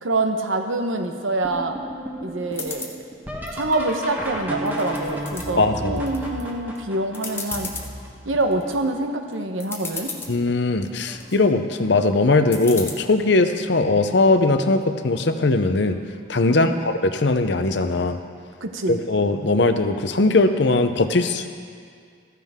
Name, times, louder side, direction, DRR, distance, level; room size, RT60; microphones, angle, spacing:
voice 1, 0.0-1.8 2.2-3.0 3.5-7.7 8.2-10.1 16.5-16.8 18.6-19.0, right 2 dB, 85° right, 5 dB, 1.1 m, -25 dB
sound 1, 1.4-9.1 9.8-10.3 10.8-11.4 12.7-12.8 13.5-13.8 16.0-16.1 18.4-18.5, equal, 10° right, 1.2 m, -34 dB
sound 2, 2.5-2.9 3.5-4.3 4.7-5.5 6.0-6.4 6.8-6.9 7.1-7.9 8.4-8.8 9.3-9.4 9.6-10.3 10.9-11.4 12.5-12.9, left 4 dB, 10° left, 0.8 m, -34 dB
voice 2, 5.6-6.0 10.3-16.0 16.3-18.2 18.9-21.5, left 2 dB, 60° left, 8 dB, 0.7 m, -20 dB
15.0 x 14.0 x 3.6 m, 2.2 s
head